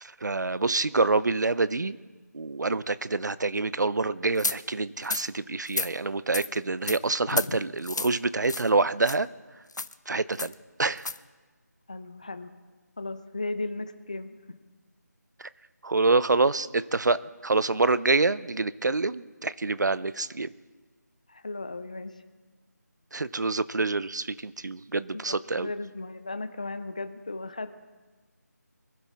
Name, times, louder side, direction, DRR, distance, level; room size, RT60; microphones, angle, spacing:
voice 1, 0.0-2.0 2.3-9.3 10.1-10.5 10.8-11.0 15.8-20.5 23.1-25.7, right 3 dB, 80° right, 17 dB, 0.6 m, -26 dB
sound 1, 4.4-4.6 5.0-5.2 5.7-5.9 6.3-6.5 6.9-7.0 7.3-7.5 7.8-8.1 8.5-8.7 9.0-9.2 9.7-9.9 10.4-10.5 11.0-11.2, left 3 dB, 80° left, 0.6 m, -31 dB
voice 2, 7.3-7.6 11.9-12.5 13.0-14.4 21.3-22.2 25.1-27.8, left 2 dB, 25° left, 10 dB, 0.5 m, -36 dB
24.0 x 11.5 x 3.6 m, 1.3 s
figure-of-eight pair, 175°, 10 cm